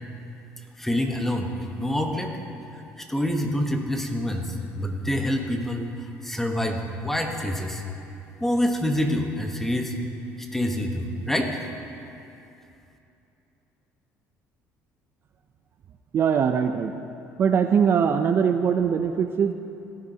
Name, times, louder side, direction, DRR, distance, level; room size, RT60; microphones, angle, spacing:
voice 1, 0.8-1.5 1.8-2.4 2.7-7.8 8.4-9.9 10.4-11.6, left 1 dB, 5° left, 3 dB, 1.0 m, -27 dB
voice 2, 16.1-16.9 17.4-19.5, right 7 dB, 45° right, 7 dB, 0.4 m, -21 dB
16.5 x 10.5 x 2.8 m, 2.7 s
cardioid pair, 110°, 6 cm